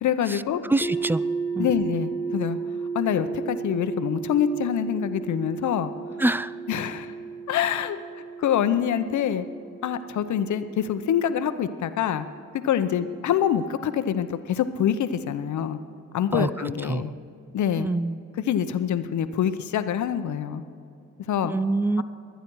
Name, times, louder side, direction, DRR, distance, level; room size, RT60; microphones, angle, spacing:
voice 1, 0.0-0.6 1.6-2.6 2.9-5.9 6.7-7.1 7.5-8.0 8.4-9.5 9.8-12.3 12.6-15.8 16.1-17.1 17.5-17.9 18.5-20.6 21.3-21.5 22.0-22.1, left 9 dB, 70° left, 11 dB, 0.8 m, -25 dB
voice 2, 0.7-1.2 1.5-1.7 6.2-6.5 16.3-16.5 16.9-17.0 17.8-18.2 21.4-22.0, right 2 dB, 5° right, 18 dB, 0.3 m, -24 dB
sound 1, 0.8-12.7, right 5 dB, 10° left, 1.6 m, -34 dB
22.0 x 9.3 x 4.7 m, 2.5 s
cardioid pair, 70°, 31 cm